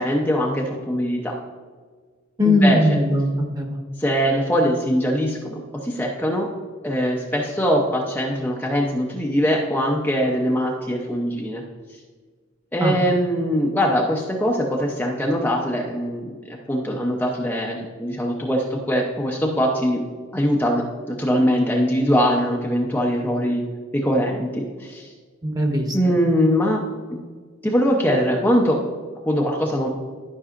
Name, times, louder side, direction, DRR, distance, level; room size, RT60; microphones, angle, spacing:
voice 1, 0.0-1.4 2.4-2.8 4.0-6.5 6.8-11.6 12.7-16.3 16.7-20.0 20.3-23.6 23.9-25.1 25.9-26.8 27.1-27.2 27.6-28.8 29.3-29.9, equal, 10° left, -2 dB, 0.7 m, -22 dB
voice 2, 2.4-3.8 12.8-12.9 25.4-25.9, left 1 dB, 20° right, 1 dB, 1.2 m, -19 dB
12.5 x 5.5 x 2.5 m, 1.5 s
head